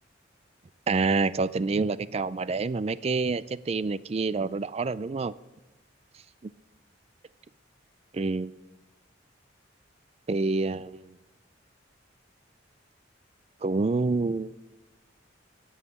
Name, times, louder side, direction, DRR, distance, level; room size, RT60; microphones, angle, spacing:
voice 1, 0.9-5.3 6.4-6.5 8.1-8.5 10.3-11.2 13.6-14.5, right 3 dB, 30° right, 0.3 m, -27 dB
16.5 x 7.2 x 7.0 m
head